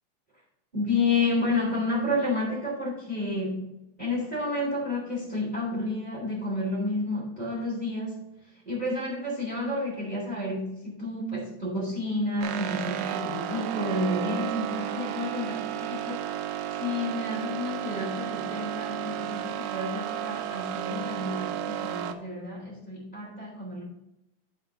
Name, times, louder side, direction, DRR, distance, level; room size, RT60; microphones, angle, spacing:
voice 1, 0.7-3.7 4.0-8.3 8.6-16.2 16.5-23.8, left 2 dB, 15° right, -4 dB, 2.7 m, -30 dB
sound 1, 12.4-22.1, right 11 dB, 80° right, 1.7 m, -33 dB
13.0 x 4.4 x 3.8 m, 0.88 s
omnidirectional pair, 3.9 m